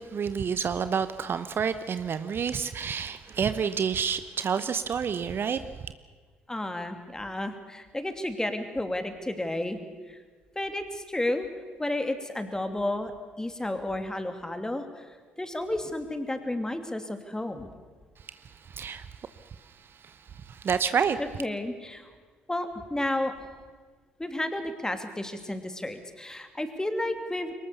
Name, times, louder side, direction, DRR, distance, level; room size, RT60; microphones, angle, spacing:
voice 1, 0.0-5.6 18.7-19.1 20.0-20.1 20.5-21.2, right 7 dB, 45° right, 12 dB, 0.9 m, -28 dB
voice 2, 6.5-9.8 10.1-10.2 10.5-11.5 11.8-13.1 13.4-15.0 15.4-17.7 21.4-22.1 22.5-23.3 24.2-27.5, left 1 dB, 10° left, 8 dB, 2.9 m, -32 dB
23.0 x 19.5 x 7.0 m, 1.5 s
hypercardioid pair, 50°, 5 cm